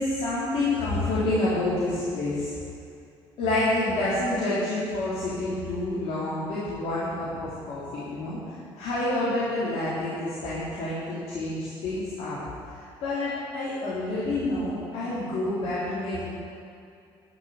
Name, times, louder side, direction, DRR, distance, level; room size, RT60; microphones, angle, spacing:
voice 1, 0.0-2.5 3.4-8.4 8.8-12.4 13.0-16.2, left 2 dB, 75° left, -10 dB, 3.7 m, -28 dB
12.0 x 7.1 x 9.2 m, 2.5 s
cardioid pair, 90°, 10 cm